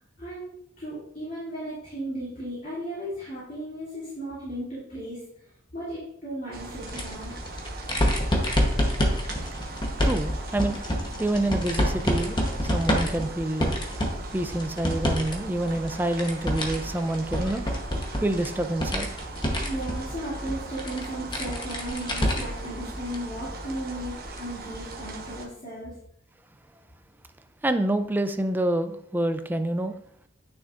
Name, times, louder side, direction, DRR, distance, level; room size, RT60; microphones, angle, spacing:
voice 1, 0.2-5.2 5.7-7.3 19.6-25.9, right 1 dB, 40° left, -10 dB, 2.7 m, -35 dB
sound 1, 6.5-25.4, right 2 dB, 45° right, 1.0 m, -39 dB
sound 2, 6.9-15.3 15.7-22.7 23.1-23.2 24.4-24.5, equal, 20° left, 1.0 m, -27 dB
voice 2, 10.0-10.8 11.2-17.8 18.2-19.1 27.6-29.9, right 1 dB, 10° right, 9 dB, 0.4 m, -27 dB
9.5 x 6.1 x 2.5 m, 0.70 s
head